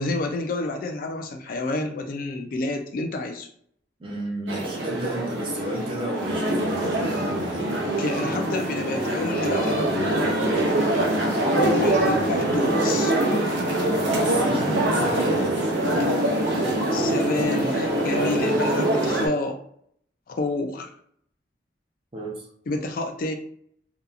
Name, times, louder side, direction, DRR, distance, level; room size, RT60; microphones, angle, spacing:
voice 1, 0.0-3.5 8.0-10.3 11.5-13.1 15.9-16.1 16.9-19.6 20.3-20.9 22.7-23.3, left 2 dB, 50° left, 4 dB, 0.3 m, -29 dB
voice 2, 4.0-7.7 13.8-15.8 17.3-17.5 22.1-22.5, right 1 dB, 30° right, -1 dB, 0.6 m, -33 dB
sound 1, 4.5-19.3, right 1 dB, 90° right, 0.6 m, -24 dB
2.7 x 2.3 x 2.4 m, 0.65 s
head